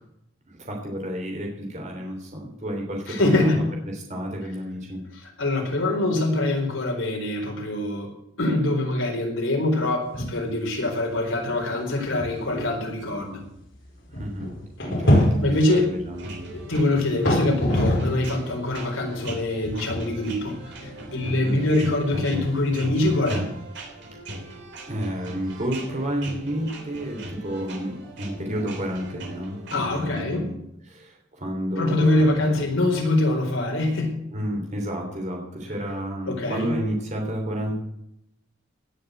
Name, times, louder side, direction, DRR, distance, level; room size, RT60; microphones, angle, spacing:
voice 1, 0.5-3.6 3.9-5.0 14.1-14.5 14.8-16.5 21.4-21.6 24.9-30.5 30.8-32.6 34.3-37.7, equal, 35° right, 1 dB, 3.3 m, -31 dB
voice 2, 3.1-3.6 5.1-13.4 15.4-15.9 16.5-23.5 29.7-30.4 31.8-34.1 36.3-36.7, left 2 dB, 80° left, 1 dB, 4.3 m, -24 dB
sound 1, 10.0-10.5 10.9-11.0 11.6-11.7 12.2-18.3 18.6-22.9, equal, 65° left, 5.4 m, -26 dB
sound 2, 16.1-30.2, right 1 dB, 60° right, 3.6 m, -38 dB
18.0 x 6.5 x 7.9 m, 0.79 s
head